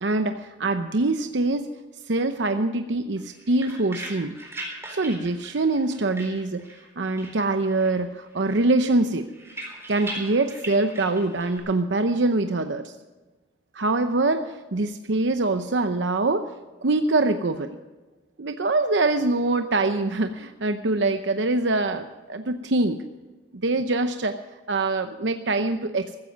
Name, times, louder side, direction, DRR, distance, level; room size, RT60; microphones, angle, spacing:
voice 1, 0.0-1.7 2.1-4.4 4.9-6.7 7.0-9.3 9.9-12.9 13.7-16.5 16.8-17.8 18.4-23.0 23.5-24.4 24.7-26.2, right 2 dB, 85° right, 8 dB, 0.8 m, -24 dB
sound 1, 3.2-6.9 7.2-8.0 8.3-11.6, right 1 dB, 15° right, 4.0 m, -39 dB
15.0 x 14.5 x 5.2 m, 1.2 s
head